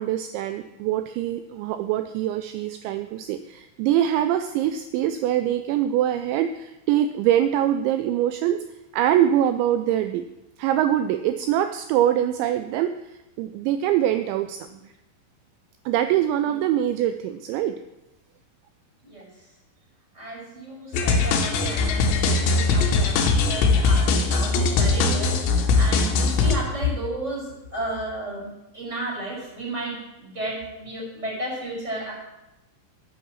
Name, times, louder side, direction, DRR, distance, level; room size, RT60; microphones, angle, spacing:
voice 1, 0.0-8.6 8.9-10.3 10.6-12.9 13.4-14.9 15.9-17.8, right 11 dB, 85° right, 9 dB, 2.6 m, -23 dB
voice 2, 20.1-28.5 28.7-32.1, equal, 15° right, -4 dB, 5.1 m, -33 dB
sound 1, 20.9-26.6, left 4 dB, 75° left, 3.2 m, -21 dB
9.5 x 8.8 x 7.3 m, 0.95 s
omnidirectional pair, 5.7 m